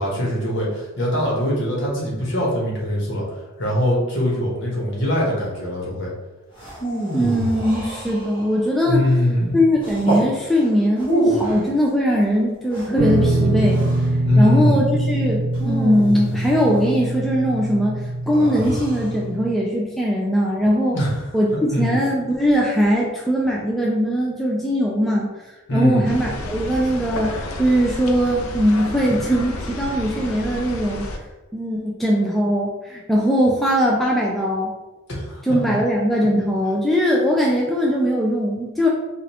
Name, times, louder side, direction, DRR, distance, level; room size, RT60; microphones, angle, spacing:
voice 1, 0.0-3.2 3.6-6.1 8.9-9.6 14.2-14.9 20.9-21.3 21.7-22.0 25.7-26.2 35.1-35.4 35.7-35.8, left 1 dB, 55° left, -3 dB, 1.1 m, -22 dB
sound 1, 6.6-8.6 9.8-10.3 11.0-11.6 12.7-14.0 15.5-16.7 18.3-19.1, right 1 dB, 20° left, 1.1 m, -26 dB
voice 2, 7.1-9.0 9.5-13.8 14.4-21.0 21.3-25.3 25.7-31.1 31.5-34.7 35.4-38.9, equal, ahead, -4 dB, 0.3 m, -20 dB
sound 2, 13.0-19.5, right 2 dB, 70° right, 0.5 m, -23 dB
sound 3, 26.0-31.2, left 2 dB, 80° left, 0.5 m, -31 dB
5.0 x 2.4 x 2.9 m, 1.1 s
head